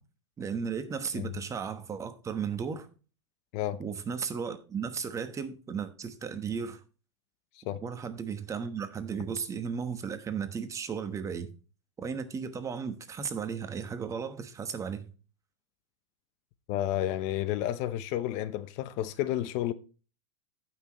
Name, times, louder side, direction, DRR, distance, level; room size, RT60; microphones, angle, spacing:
voice 1, 0.4-2.9 3.8-6.8 7.8-11.5 12.0-15.1, right 6 dB, 20° right, 1.1 m, -35 dB
voice 2, 16.7-19.7, left 13 dB, 45° left, 0.8 m, -31 dB
14.5 x 6.1 x 3.0 m
hypercardioid pair, 130°, 16 cm